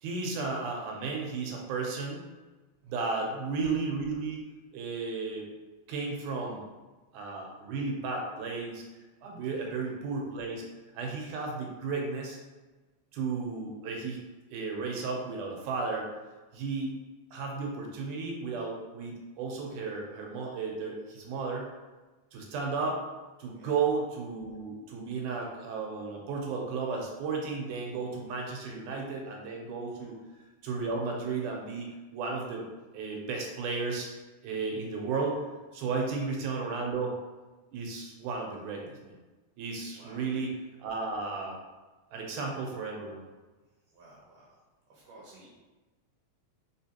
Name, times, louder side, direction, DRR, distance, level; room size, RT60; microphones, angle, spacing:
voice 1, 0.0-2.2 2.9-4.4 4.7-5.5 5.9-6.6 7.1-8.8 9.2-10.6 10.9-12.4 13.1-14.2 14.5-16.1 16.5-17.0 17.3-21.7 22.3-23.0 23.4-30.2 30.6-32.6 32.9-34.1 34.4-35.4 35.7-37.1 37.7-39.1 39.6-40.5 40.8-41.6 42.1-43.2, right 4 dB, 85° right, 0 dB, 2.3 m, -34 dB
voice 2, 2.9-3.3 9.4-9.8 23.6-23.8 29.9-30.1 35.9-36.1 39.9-40.2 43.9-44.6 44.9-45.5, right 2 dB, 70° right, -5 dB, 2.0 m, -55 dB
4.4 x 3.7 x 2.9 m, 1.2 s
omnidirectional pair, 3.4 m